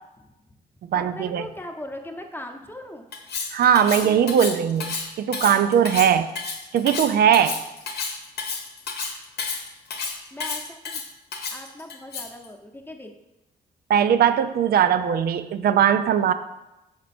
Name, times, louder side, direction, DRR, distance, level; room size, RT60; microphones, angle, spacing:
voice 1, 0.2-0.6 0.9-3.1 10.3-11.0 11.5-13.1, left 1 dB, 15° left, 3 dB, 0.8 m, -39 dB
voice 2, 0.9-1.4 3.5-6.3 6.7-7.6 13.9-16.3, right 9 dB, 70° right, 11 dB, 0.4 m, -20 dB
Cutlery silverware, 3.1-12.5, left 5 dB, 80° left, 0.9 m, -31 dB
6.1 x 4.4 x 4.3 m, 0.96 s
cardioid pair, 90°, 17 cm